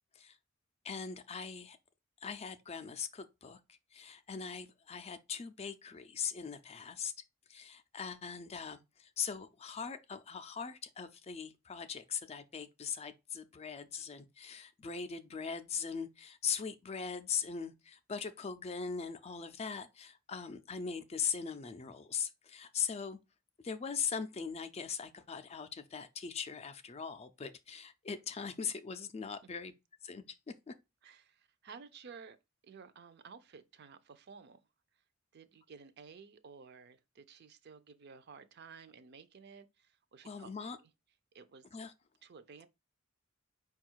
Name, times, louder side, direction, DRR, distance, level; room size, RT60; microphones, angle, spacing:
voice 1, 0.8-1.8 2.2-7.1 7.5-23.2 23.6-29.7 30.0-30.4 30.7-30.8 40.2-40.8 41.7-41.9, left 6 dB, 30° left, 0.4 m, -40 dB
voice 2, 31.0-32.4 32.6-34.6 35.3-40.5 40.8-40.9 41.3-41.7 42.2-42.7, right 5 dB, 50° right, 0.5 m, -54 dB
4.8 x 2.3 x 4.4 m
head